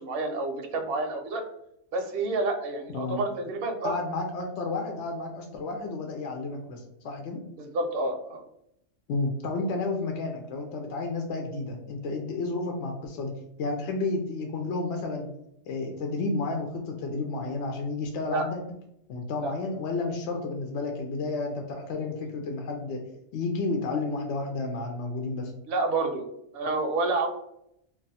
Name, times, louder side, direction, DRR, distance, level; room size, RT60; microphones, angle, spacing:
voice 1, 0.0-1.4 1.9-3.9 7.6-8.4 18.3-18.4 19.4-19.5 25.7-26.3 26.5-27.3, right 2 dB, 65° right, 4 dB, 0.7 m, -29 dB
voice 2, 3.8-7.4 9.1-13.3 13.6-15.3 15.7-18.6 19.1-23.0 23.3-25.5, left 3 dB, 70° left, 2 dB, 0.8 m, -31 dB
2.3 x 2.3 x 4.0 m, 0.77 s
omnidirectional pair, 1.3 m